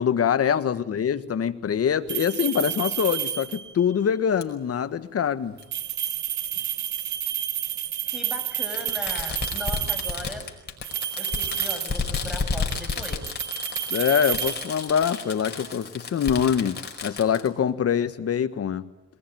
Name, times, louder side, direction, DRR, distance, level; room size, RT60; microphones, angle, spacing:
voice 1, 0.0-5.6 13.9-18.8, left 8 dB, 50° left, 11 dB, 1.6 m, -24 dB
sound 1, 2.1-3.8 5.6-10.3 10.8-12.4 12.7-15.2, right 11 dB, 70° right, 1.2 m, -30 dB
Fireworks, 4.4-4.5 5.6-5.7 7.0-7.1 8.7-17.5, left 4 dB, 35° left, 4.9 m, -32 dB
voice 2, 8.0-10.5 11.2-13.3, equal, 5° right, 6 dB, 6.6 m, -38 dB
23.0 x 19.5 x 9.3 m, 0.94 s
cardioid pair, 90°, 30 cm